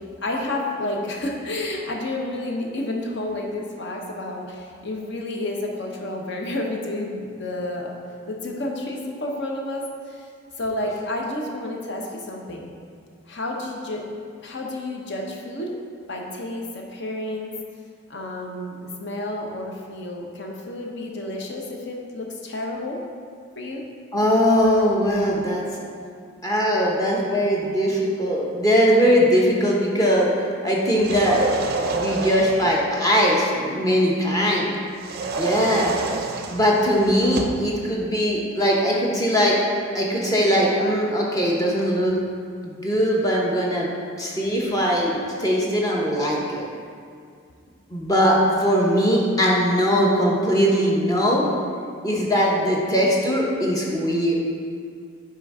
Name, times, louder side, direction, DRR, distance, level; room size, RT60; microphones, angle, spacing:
voice 1, 0.2-7.9 8.3-10.3 10.6-12.7 13.3-14.0 14.4-15.7 16.1-17.5 18.1-23.0 23.6-23.8 35.5-35.9, left 1 dB, 55° left, 0 dB, 0.8 m, -30 dB
voice 2, 24.1-25.6 26.4-31.5 31.9-34.7 35.4-35.9 36.5-39.6 39.9-42.2 42.6-43.9 44.2-46.7 47.9-51.4 52.0-54.3, equal, 15° left, -3 dB, 0.8 m, -20 dB
sound 1, 30.9-32.8 35.0-37.7, right 3 dB, 45° right, 0.4 m, -28 dB
5.8 x 4.5 x 4.8 m, 2.2 s
head